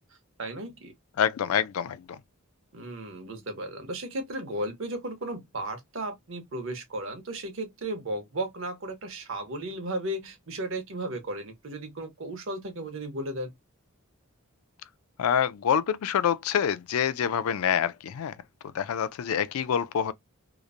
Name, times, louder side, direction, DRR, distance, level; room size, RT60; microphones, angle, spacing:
voice 1, 0.4-0.9 2.7-13.5, right 1 dB, 65° right, 0.9 m, -35 dB
voice 2, 1.2-2.2 15.2-18.3 18.7-20.1, left 8 dB, 80° left, 0.4 m, -26 dB
2.9 x 2.0 x 2.4 m
head